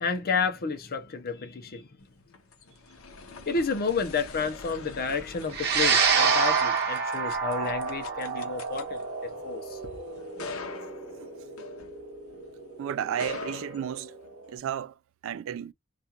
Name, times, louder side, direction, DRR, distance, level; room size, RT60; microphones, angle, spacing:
voice 1, 0.0-1.9 3.5-9.8, left 5 dB, 45° left, 0.6 m, -31 dB
sound 1, 2.1-12.4 13.0-14.5, left 4 dB, 90° left, 0.7 m, -44 dB
sound 2, 5.5-14.1, right 5 dB, 50° right, 0.8 m, -28 dB
voice 2, 12.8-14.1 14.5-14.9 15.2-15.7, right 9 dB, 65° right, 0.3 m, -32 dB
2.4 x 2.3 x 2.8 m
head